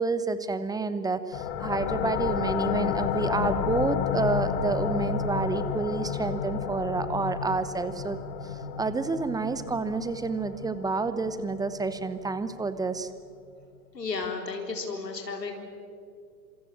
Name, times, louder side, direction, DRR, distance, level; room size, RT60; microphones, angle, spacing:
voice 1, 0.0-8.2 8.5-13.1, right 4 dB, 10° right, 12 dB, 0.9 m, -29 dB
sound 1, 1.3-12.7, left 8 dB, 40° left, 2.0 m, -31 dB
voice 2, 13.9-15.6, left 4 dB, 80° left, 3 dB, 4.1 m, -33 dB
27.0 x 26.5 x 7.4 m, 2.3 s
figure-of-eight pair, 105°, 49 cm